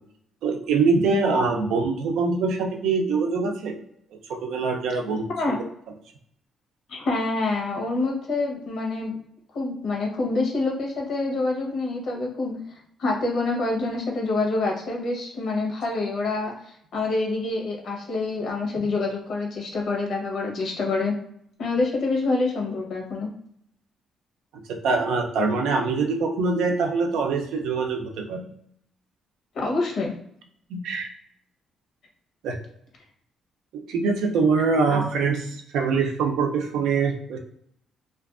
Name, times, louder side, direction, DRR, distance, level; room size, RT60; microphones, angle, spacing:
voice 1, 0.4-3.8 4.3-5.6 24.8-28.4 30.7-31.1 32.4-32.6 33.7-37.4, right 4 dB, 85° right, 3 dB, 0.5 m, -24 dB
voice 2, 6.9-9.1 9.5-21.1 21.6-23.3 29.5-30.1 34.9-35.0, left 3 dB, 70° left, 0 dB, 0.9 m, -26 dB
2.4 x 2.3 x 2.4 m, 0.70 s
cardioid pair, 90°, 0 cm